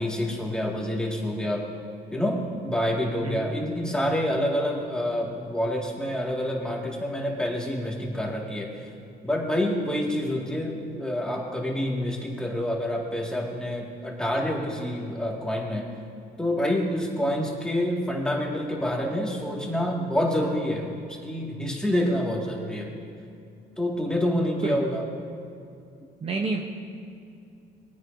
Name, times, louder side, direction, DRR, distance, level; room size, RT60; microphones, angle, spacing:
voice 1, 0.0-1.6 2.1-8.9 9.2-15.9 16.4-20.9 21.2-22.9 23.8-25.1, left 1 dB, 5° left, -2 dB, 2.0 m, -27 dB
voice 2, 26.2-26.6, right 4 dB, 35° right, 2 dB, 0.9 m, -28 dB
20.5 x 9.5 x 2.7 m, 2.5 s
cardioid pair, 110°, 17 cm